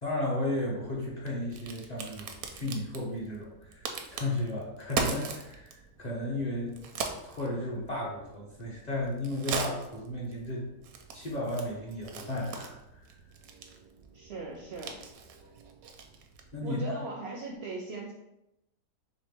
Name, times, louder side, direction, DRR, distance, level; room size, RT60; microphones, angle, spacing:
voice 1, 0.0-6.8 7.2-10.7 11.1-13.1 15.4-15.5 16.5-17.0, left 1 dB, 35° left, -5 dB, 0.7 m, -34 dB
Crack, 0.5-16.6, right 5 dB, 80° right, 1.1 m, -41 dB
voice 2, 14.1-15.0 16.6-18.1, right 3 dB, 65° right, 0 dB, 0.7 m, -39 dB
4.0 x 3.2 x 3.4 m, 0.88 s
omnidirectional pair, 1.5 m